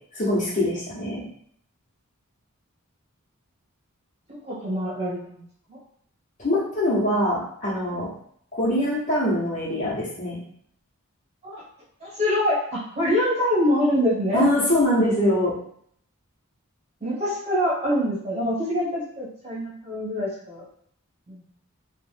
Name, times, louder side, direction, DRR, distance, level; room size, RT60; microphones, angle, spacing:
voice 1, 0.1-1.3 6.4-8.1 8.5-10.4 14.3-15.5, left 1 dB, 35° left, -6 dB, 0.8 m, -23 dB
voice 2, 4.4-5.8 11.4-11.5 12.0-14.4 17.0-20.6 21.3-21.4, equal, 30° right, -6 dB, 1.2 m, -25 dB
2.4 x 2.1 x 3.3 m, 0.65 s
head